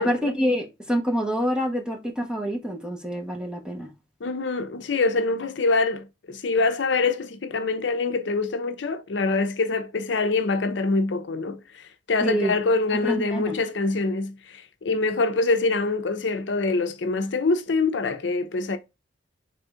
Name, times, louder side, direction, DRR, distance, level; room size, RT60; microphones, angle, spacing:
voice 1, 0.0-3.9 12.2-12.5 12.9-13.6, equal, 5° right, 1.2 m, -26 dB
voice 2, 4.2-18.8, left 3 dB, 70° left, 0.6 m, -25 dB
3.8 x 3.4 x 3.6 m
head